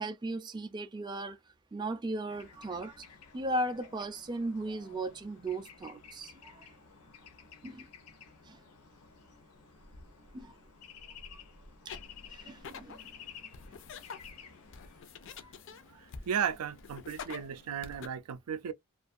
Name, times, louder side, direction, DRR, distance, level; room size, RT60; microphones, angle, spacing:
voice 1, 0.0-1.4 1.7-3.1 3.3-6.7 7.6-7.9 8.4-8.6 10.3-10.6 12.3-13.1 15.4-15.5 15.9-16.0, right 2 dB, 20° right, 0.3 m, -37 dB
Bird / Traffic noise roadway noise, 2.3-15.0, left 6 dB, 85° left, 0.7 m, -53 dB
sound 1, 11.9-18.1, left 6 dB, 55° left, 0.4 m, -48 dB
voice 2, 16.3-18.7, right 8 dB, 90° right, 0.4 m, -34 dB
2.4 x 2.4 x 2.4 m
head